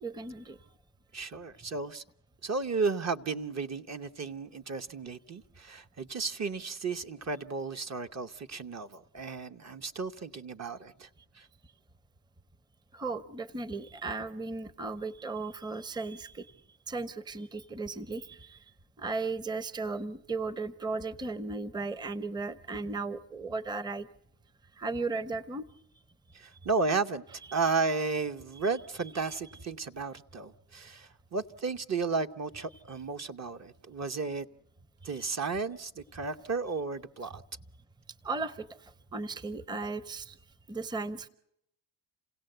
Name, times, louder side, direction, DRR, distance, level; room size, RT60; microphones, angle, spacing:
voice 1, 0.0-0.6 12.9-16.5 16.9-18.6 19.0-24.1 24.8-25.6 35.2-35.3 38.2-40.4 40.7-41.3, right 3 dB, 10° right, 16 dB, 0.8 m, -36 dB
voice 2, 1.1-2.0 2.4-11.1 11.4-11.5 26.3-27.2 27.5-34.5 35.0-37.4, right 4 dB, 35° right, 7 dB, 1.0 m, -33 dB
28.0 x 16.5 x 7.9 m, 0.79 s
supercardioid pair, 70°, 48 cm